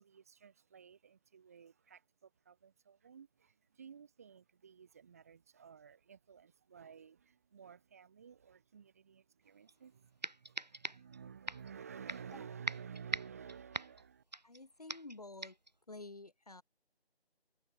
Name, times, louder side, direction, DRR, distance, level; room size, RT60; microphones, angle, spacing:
voice 1, 0.0-14.2, right 7 dB, 15° right, 2.7 m, -53 dB
sound 1, 9.7-9.8 10.2-11.2 11.5-11.7 12.1-12.4 12.7-14.6 14.9-15.2 15.4-15.7, right 2 dB, 45° right, 0.5 m, -42 dB
voice 2, 14.4-15.6 15.9-16.6, left 2 dB, 35° left, 1.3 m, -50 dB
figure-of-eight pair, 165°, 32 cm